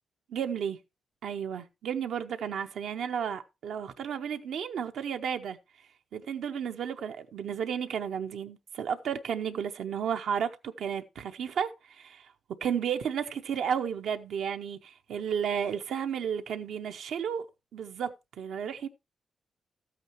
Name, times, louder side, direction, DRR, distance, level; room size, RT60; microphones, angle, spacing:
voice 1, 0.3-0.8 1.2-5.6 6.1-12.3 12.6-17.5 17.7-18.9, right 8 dB, 85° right, 0.7 m, -33 dB
13.0 x 8.7 x 3.0 m
wide cardioid pair, 150°, 0 cm